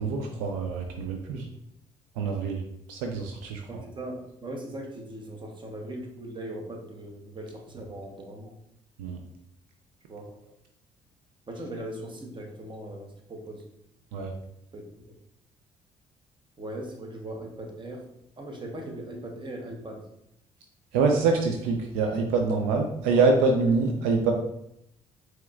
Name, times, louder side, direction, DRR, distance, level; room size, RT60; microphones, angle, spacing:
voice 1, 0.0-1.5 2.2-2.6 2.9-3.6 9.0-9.2 14.1-14.3 20.9-24.3, right 4 dB, 85° right, 3 dB, 0.4 m, -25 dB
voice 2, 3.7-8.5 10.1-10.3 11.5-13.7 14.7-15.2 16.6-20.1, right 1 dB, 35° right, 1 dB, 1.0 m, -39 dB
4.7 x 3.0 x 2.4 m, 0.78 s
supercardioid pair, 60°, 15 cm